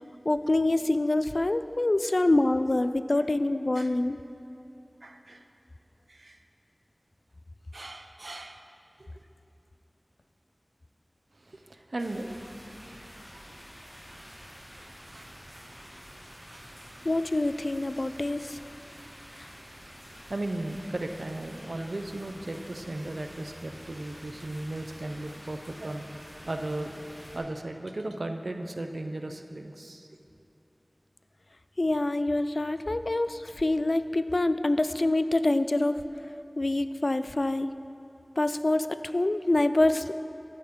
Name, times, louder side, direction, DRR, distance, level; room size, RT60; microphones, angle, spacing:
voice 1, 0.2-4.2 17.0-18.6 31.8-36.0 36.6-37.7 38.4-40.3, left 2 dB, 60° left, 11 dB, 0.3 m, -26 dB
voice 2, 5.0-5.4 6.1-6.4 7.7-8.7 9.0-9.1 11.3-12.4 13.0-13.2 13.6-13.7 15.1-15.3 16.5-17.1 20.3-26.0 26.5-27.0 27.3-30.1, right 2 dB, 80° right, 6 dB, 0.5 m, -36 dB
sound 1, 12.0-27.4, equal, 5° right, 2.5 m, -48 dB
11.0 x 8.8 x 3.7 m, 2.7 s
wide cardioid pair, 50°, 0 cm